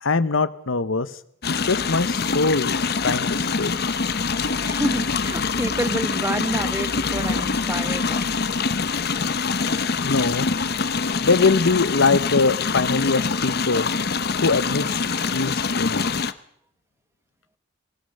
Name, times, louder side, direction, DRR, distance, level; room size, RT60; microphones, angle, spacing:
voice 1, 0.0-1.1 1.5-2.7 3.0-3.7 10.0-10.5 11.2-13.9 14.4-16.1, left 4 dB, 90° left, 14 dB, 1.0 m, -22 dB
sound 1, 1.4-16.3, left 4 dB, 55° left, 0.9 m, -24 dB
voice 2, 4.6-8.3 8.6-8.7, right 1 dB, 15° right, 11 dB, 1.2 m, -29 dB
21.5 x 18.5 x 6.6 m, 0.69 s
head